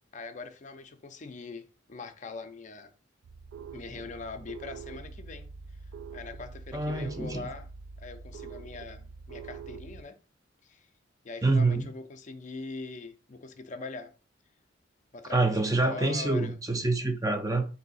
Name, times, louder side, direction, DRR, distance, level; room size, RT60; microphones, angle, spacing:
voice 1, 0.1-2.9 3.7-5.8 6.1-7.7 8.0-10.2 10.6-10.9 11.2-14.1 15.1-16.6, left 3 dB, 40° left, 0.4 m, -42 dB
sound 1, 3.2-10.0, right 5 dB, 90° right, 0.4 m, -44 dB
voice 2, 6.7-7.4 11.4-11.9 15.3-17.6, right 2 dB, 20° right, 0.5 m, -26 dB
3.7 x 2.7 x 4.1 m
head